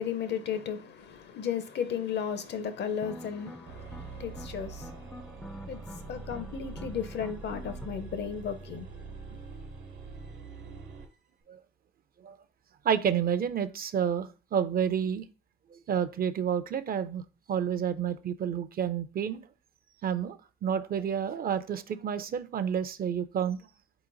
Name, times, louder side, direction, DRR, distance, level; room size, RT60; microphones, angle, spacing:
voice 1, 0.0-5.2 5.7-8.9, left 8 dB, 60° left, 0.6 m, -35 dB
sound 1, 2.9-7.9, left 1 dB, 5° left, 0.4 m, -47 dB
sound 2, 3.7-11.1, right 4 dB, 70° right, 1.1 m, -44 dB
voice 2, 12.8-15.3 15.7-17.2 17.5-19.4 20.0-23.6, right 8 dB, 50° right, 0.5 m, -30 dB
4.3 x 2.9 x 3.9 m
cardioid pair, 90°, 20 cm